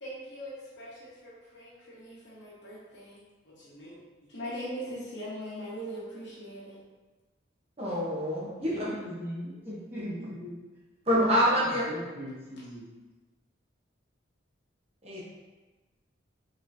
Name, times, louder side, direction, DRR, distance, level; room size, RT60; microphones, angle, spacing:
voice 1, 0.0-3.2 3.4-4.0 4.3-6.8, equal, 65° left, -7 dB, 1.2 m, -41 dB
voice 2, 7.8-8.9 11.1-11.8 15.0-15.2, equal, 35° right, -6 dB, 0.9 m, -26 dB
voice 3, 8.6-10.6 11.4-12.9, equal, 10° right, -10 dB, 1.2 m, -39 dB
3.9 x 3.1 x 2.6 m, 1.2 s
head